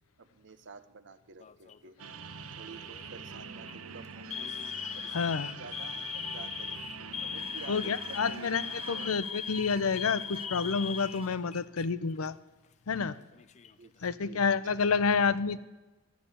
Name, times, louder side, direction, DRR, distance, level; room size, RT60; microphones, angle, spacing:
voice 1, 0.2-2.0 2.5-6.0 6.3-6.8 7.2-9.1 13.8-14.4, right 4 dB, 60° right, 10 dB, 0.9 m, -50 dB
Alarm, 1.4-1.9 2.8-3.1 3.5-3.7 4.3-11.9 12.2-12.3 13.2-13.9, left 8 dB, 35° left, 0.4 m, -39 dB
sound 1, 2.0-9.1, right 5 dB, 90° right, 0.9 m, -45 dB
voice 2, 5.1-5.6 7.7-12.4 12.9-13.2 14.0-15.6, left 5 dB, 90° left, 16 dB, 0.6 m, -29 dB
sound 2, 7.3-11.4, right 4 dB, 25° right, 0.9 m, -51 dB
14.0 x 6.9 x 9.9 m, 1.1 s
head